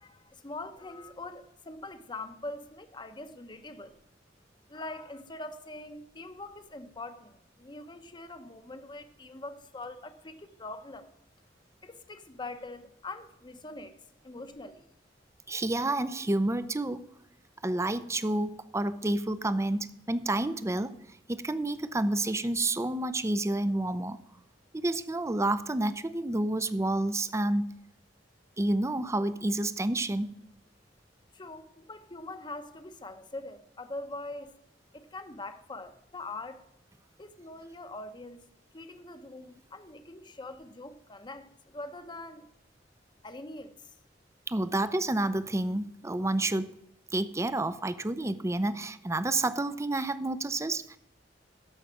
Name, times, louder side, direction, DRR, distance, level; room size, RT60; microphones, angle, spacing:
voice 1, 0.0-4.0 4.7-11.1 11.8-14.0 14.2-14.9 31.3-34.5 34.9-36.6 37.2-38.5 38.7-42.5 43.2-44.0, left 2 dB, 25° left, 0.9 m, -43 dB
voice 2, 15.5-17.0 17.6-20.9 21.3-24.2 24.7-27.7 28.6-30.3 44.5-46.8 47.1-51.0, right 2 dB, 15° right, 0.6 m, -29 dB
13.5 x 5.6 x 6.3 m
head